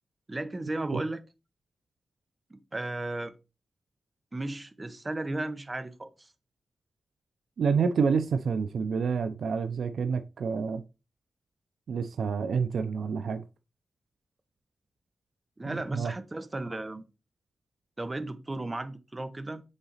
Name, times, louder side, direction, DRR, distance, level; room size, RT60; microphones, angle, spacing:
voice 1, 0.3-1.2 2.5-3.3 4.3-6.3 15.6-17.0 18.0-19.6, right 2 dB, 20° right, 0.8 m, -35 dB
voice 2, 7.6-10.8 11.9-13.4 15.7-16.1, right 5 dB, 85° right, 0.5 m, -28 dB
7.1 x 3.9 x 3.9 m
wide cardioid pair, 125°, 0 cm